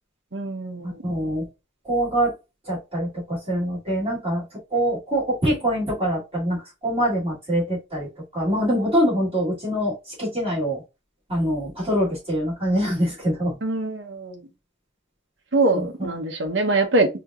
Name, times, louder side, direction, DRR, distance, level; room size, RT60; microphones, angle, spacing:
voice 1, 0.3-1.0 13.6-14.4 15.5-17.1, right 2 dB, 70° right, 1.0 m, -23 dB
voice 2, 0.8-1.5 1.8-2.3 2.6-4.4 4.7-10.8 11.3-13.5 15.7-16.1, equal, 30° right, 2.7 m, -24 dB
5.3 x 2.9 x 2.4 m
head